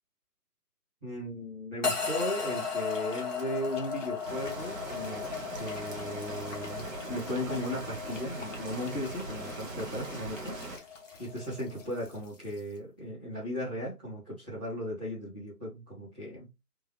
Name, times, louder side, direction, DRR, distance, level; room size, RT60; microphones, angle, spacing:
voice 1, 1.0-5.2 5.6-10.8 11.2-16.5, left 1 dB, 5° right, 1.0 m, -37 dB
sound 1, 1.8-12.8, left 3 dB, 50° left, 1.0 m, -51 dB
sound 2, 1.8-12.2, left 5 dB, 30° left, 1.2 m, -37 dB
sound 3, 4.2-10.8, right 2 dB, 55° right, 1.3 m, -41 dB
3.6 x 3.2 x 3.1 m
figure-of-eight pair, 160°, 47 cm